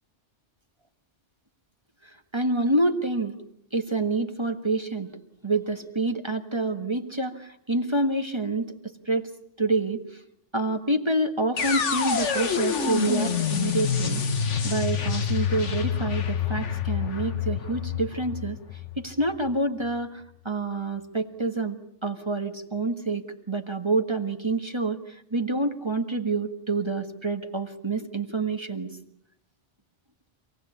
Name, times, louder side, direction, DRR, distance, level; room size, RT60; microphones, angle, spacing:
voice 1, 2.0-3.3 3.7-5.1 5.4-9.3 9.6-10.2 10.5-14.2 14.6-29.0, right 2 dB, 25° right, 6 dB, 1.6 m, -27 dB
sound 1, 11.6-19.5, left 7 dB, 80° left, 1.7 m, -27 dB
27.0 x 18.5 x 8.4 m, 0.72 s
omnidirectional pair, 1.2 m